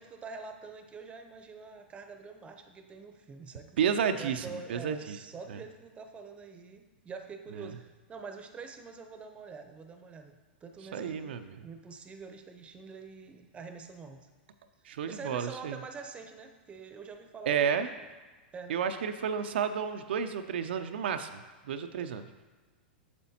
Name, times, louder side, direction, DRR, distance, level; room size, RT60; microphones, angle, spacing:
voice 1, 0.0-3.7 4.1-11.3 11.6-14.3 15.1-18.1 18.5-18.8 22.0-22.1, right 4 dB, 20° right, 7 dB, 0.7 m, -46 dB
voice 2, 3.8-5.2 5.5-5.6 7.6-7.7 10.9-11.7 14.8-15.8 17.5-17.9 18.7-21.3 21.7-22.2, right 7 dB, 75° right, 7 dB, 0.4 m, -31 dB
8.5 x 6.8 x 2.8 m, 1.3 s
hypercardioid pair, 110°, 6 cm